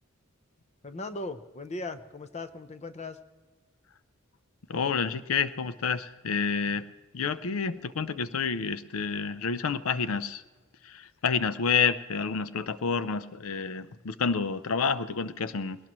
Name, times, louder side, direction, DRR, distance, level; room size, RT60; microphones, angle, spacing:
voice 1, 0.8-3.2, left 2 dB, 35° left, 11 dB, 0.7 m, -38 dB
voice 2, 4.7-6.8 7.1-10.4 10.8-15.8, left 5 dB, 85° left, 14 dB, 0.6 m, -29 dB
21.0 x 18.0 x 3.1 m, 1.3 s
head